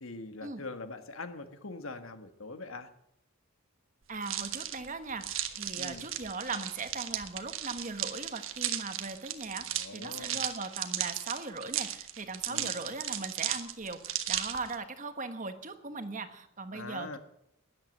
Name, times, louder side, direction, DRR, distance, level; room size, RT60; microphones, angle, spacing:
voice 1, 0.0-2.9 5.8-6.0 9.6-10.4 12.5-12.7 16.7-17.2, left 3 dB, 80° left, 8 dB, 1.6 m, -43 dB
voice 2, 4.1-17.2, right 3 dB, 40° right, 9 dB, 1.4 m, -39 dB
sound 1, 4.2-14.7, right 11 dB, 70° right, 1.3 m, -36 dB
13.0 x 11.0 x 7.9 m, 0.77 s
head